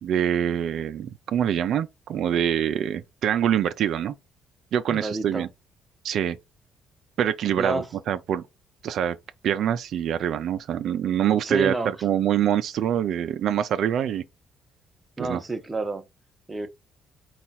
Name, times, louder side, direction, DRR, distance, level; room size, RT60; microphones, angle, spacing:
voice 1, 0.0-4.1 4.7-5.5 6.0-6.4 7.2-8.4 8.8-9.2 9.4-14.2 15.2-15.4, right 9 dB, 65° right, 0.4 m, -25 dB
voice 2, 4.9-5.5 7.6-7.9 11.4-11.9 15.2-16.0 16.5-16.7, right 2 dB, 15° right, 0.7 m, -29 dB
4.2 x 2.3 x 4.1 m
cardioid pair, 115°, 0 cm